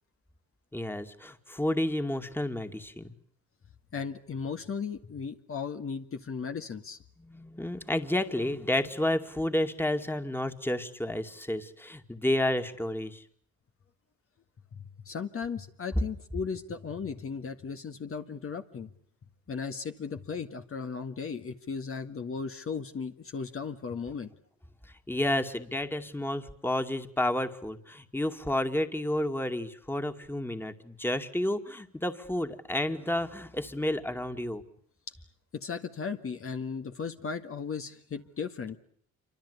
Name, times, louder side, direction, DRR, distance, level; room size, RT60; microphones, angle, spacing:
voice 1, 0.7-3.2 7.2-13.2 25.1-34.6, left 1 dB, 5° left, 7 dB, 2.4 m, -31 dB
voice 2, 3.9-7.0 14.7-18.9 19.5-24.3 35.1-35.2 35.5-38.8, left 5 dB, 45° left, 6 dB, 1.9 m, -36 dB
27.5 x 25.0 x 8.4 m, 0.62 s
cardioid pair, 90°, 30 cm